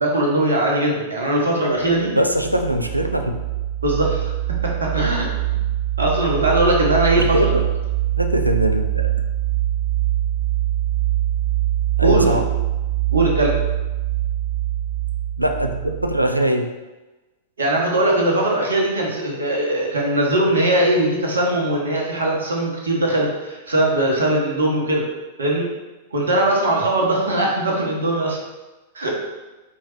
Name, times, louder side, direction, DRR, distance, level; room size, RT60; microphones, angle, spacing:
voice 1, 0.0-2.1 3.8-4.3 4.6-5.3 6.0-7.6 12.0-12.4 13.1-13.5 17.6-25.0 25.4-25.7 26.1-28.4 28.9-29.3, right 1 dB, 70° right, -2 dB, 1.0 m, -20 dB
sound 1, 1.9-16.3, right 13 dB, 40° right, 0.6 m, -23 dB
voice 2, 2.1-3.4 7.2-7.6 8.2-9.1 12.0-12.4 15.4-16.7, equal, 90° right, 5 dB, 0.3 m, -21 dB
4.5 x 3.2 x 3.1 m, 1.1 s
figure-of-eight pair, 95°, 0 cm